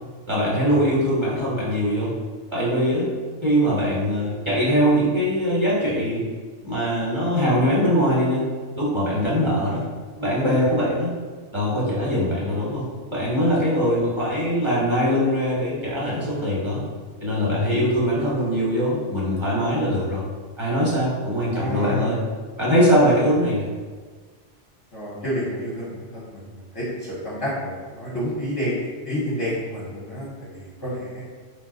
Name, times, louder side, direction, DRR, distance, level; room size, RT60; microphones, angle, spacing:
voice 1, 0.3-2.1 2.5-3.1 3.4-6.2 6.6-8.4 8.8-9.8 10.2-11.1 11.5-12.8 13.1-16.8 17.2-20.2 20.6-22.2 22.6-23.7, equal, 25° right, -7 dB, 0.8 m, -22 dB
voice 2, 21.5-22.2 24.9-28.7 29.0-31.2, equal, 30° left, -7 dB, 0.5 m, -29 dB
2.8 x 2.2 x 3.7 m, 1.5 s
omnidirectional pair, 1.2 m